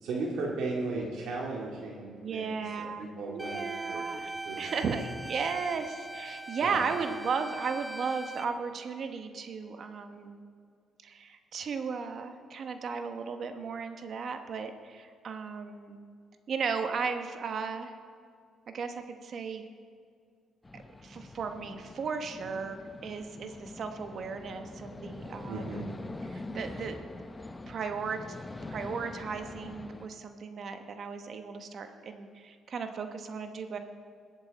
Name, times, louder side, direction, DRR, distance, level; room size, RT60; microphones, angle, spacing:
voice 1, 0.0-4.2 4.4-4.8 6.6-6.8 25.4-25.9, right 3 dB, 80° right, -3 dB, 2.1 m, -36 dB
voice 2, 2.2-10.4 11.0-16.0 16.5-17.9 18.7-19.6 20.7-25.9 26.3-27.1 27.7-28.2 28.6-33.8, right 5 dB, 55° right, 7 dB, 1.0 m, -35 dB
sound 1, 3.4-8.4, right 2 dB, 10° right, 0.9 m, -41 dB
sound 2, 20.6-30.1, left 2 dB, 20° left, 0.6 m, -44 dB
20.0 x 8.1 x 4.1 m, 2.2 s
cardioid pair, 90°, 0 cm